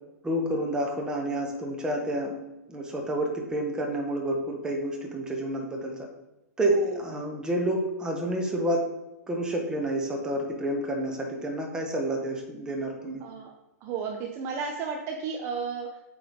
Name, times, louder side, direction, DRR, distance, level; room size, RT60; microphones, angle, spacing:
voice 1, 0.2-2.3 2.7-6.1 6.6-8.8 9.3-13.2, right 1 dB, 10° right, 0 dB, 1.3 m, -29 dB
voice 2, 6.7-7.0 13.2-13.5 13.8-15.9, right 5 dB, 30° right, 1 dB, 0.7 m, -33 dB
8.2 x 3.4 x 3.9 m, 0.99 s
figure-of-eight pair, 110°, 9 cm